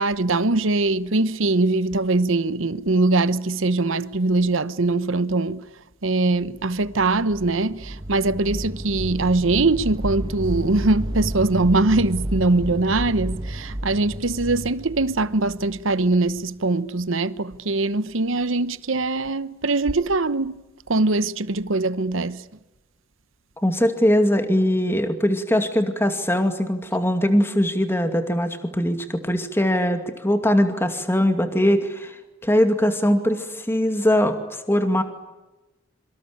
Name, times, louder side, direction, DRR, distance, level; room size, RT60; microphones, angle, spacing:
voice 1, 0.0-5.7 6.0-20.6 20.9-22.4, right 2 dB, 70° right, 1.0 m, -22 dB
sound 1, 6.6-16.4, right 1 dB, 20° right, 1.3 m, -32 dB
voice 2, 23.6-35.0, equal, 10° left, 2.4 m, -21 dB
26.5 x 24.5 x 8.7 m
head